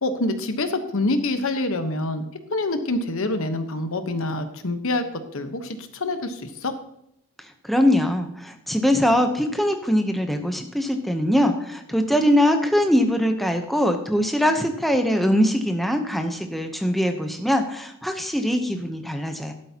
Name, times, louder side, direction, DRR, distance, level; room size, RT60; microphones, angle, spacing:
voice 1, 0.0-2.2 2.5-6.7, left 2 dB, 65° left, 8 dB, 1.1 m, -26 dB
voice 2, 7.6-19.5, equal, ahead, 5 dB, 0.8 m, -22 dB
12.5 x 12.0 x 2.9 m, 0.76 s
head